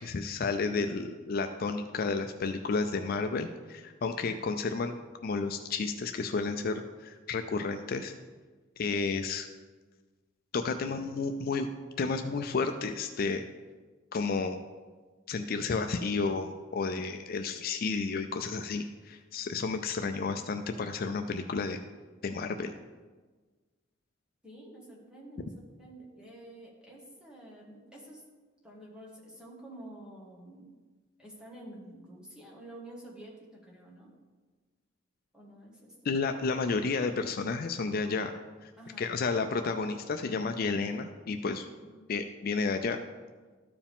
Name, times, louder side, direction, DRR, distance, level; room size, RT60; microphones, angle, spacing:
voice 1, 0.0-4.9 5.2-8.1 8.8-9.5 10.5-11.7 12.0-13.4 14.1-14.6 15.3-21.8 22.2-22.7 36.0-38.7 39.0-41.7 42.1-43.0, left 4 dB, 50° left, 7 dB, 0.4 m, -31 dB
voice 2, 24.4-28.2 28.6-30.7 31.2-34.1 35.3-36.1 38.8-39.1 41.7-42.2, right 1 dB, 5° right, -3 dB, 1.6 m, -49 dB
13.0 x 4.8 x 3.6 m, 1.4 s
head